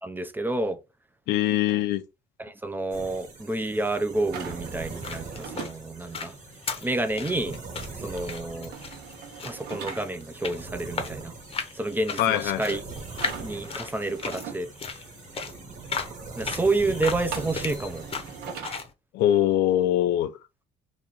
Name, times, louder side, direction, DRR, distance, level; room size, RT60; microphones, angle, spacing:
voice 1, 0.0-0.8 2.4-6.3 6.8-7.6 8.0-8.7 9.4-11.3 11.8-12.8 13.4-14.7 16.4-18.0, right 2 dB, 10° right, 0.5 m, -29 dB
voice 2, 1.3-2.0 12.2-12.8 19.1-20.3, left 12 dB, 80° left, 0.5 m, -23 dB
sound 1, 2.9-18.6, right 4 dB, 45° right, 1.3 m, -42 dB
sound 2, 4.3-5.7 8.7-10.0 13.2-14.6 17.3-18.8, right 7 dB, 75° right, 1.0 m, -40 dB
sound 3, 4.8-18.9, left 5 dB, 35° left, 0.8 m, -37 dB
2.9 x 2.5 x 3.9 m
cardioid pair, 110°, 17 cm